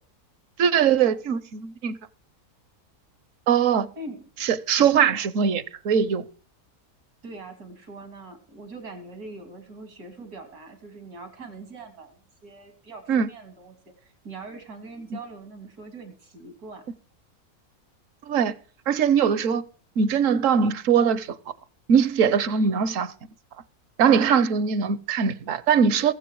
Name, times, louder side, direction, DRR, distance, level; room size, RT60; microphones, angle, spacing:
voice 1, 0.6-2.0 3.5-3.9 4.4-6.2 13.1-13.3 18.3-18.5 18.9-19.6 20.0-21.4 21.9-23.1 24.0-26.1, right 7 dB, 65° right, 1.1 m, -21 dB
voice 2, 3.9-4.3 4.8-5.1 7.2-16.9, right 2 dB, 90° right, 3.3 m, -42 dB
21.5 x 7.5 x 4.7 m
omnidirectional pair, 1.6 m